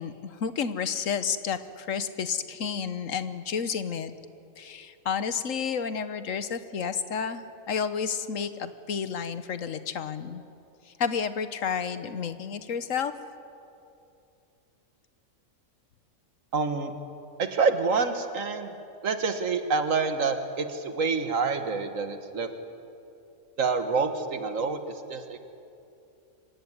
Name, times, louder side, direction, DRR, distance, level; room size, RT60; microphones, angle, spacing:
voice 1, 0.0-4.1 4.6-10.4 11.0-13.1, left 6 dB, 80° left, 12 dB, 1.4 m, -31 dB
voice 2, 16.5-16.9 17.4-18.8 19.0-22.5 23.6-25.4, right 4 dB, 80° right, 8 dB, 1.8 m, -27 dB
25.0 x 16.5 x 9.7 m, 2.7 s
omnidirectional pair, 1.4 m